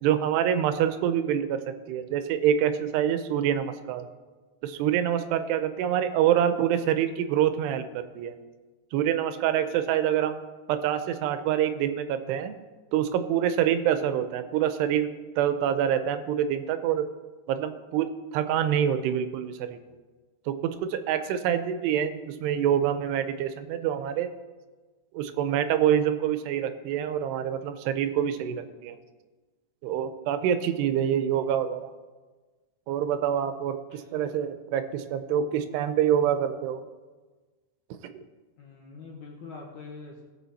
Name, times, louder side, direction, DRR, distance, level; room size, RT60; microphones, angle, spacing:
voice 1, 0.0-4.1 4.6-8.3 8.9-10.4 10.7-12.5 12.9-17.1 17.5-19.8 20.5-24.3 25.1-29.0 29.8-31.9 32.9-36.8 38.1-38.2, right 9 dB, 80° right, 10 dB, 2.7 m, -26 dB
voice 2, 33.9-34.4 38.6-40.2, left 4 dB, 65° left, -2 dB, 2.0 m, -44 dB
18.0 x 6.3 x 4.1 m, 1.3 s
omnidirectional pair, 4.8 m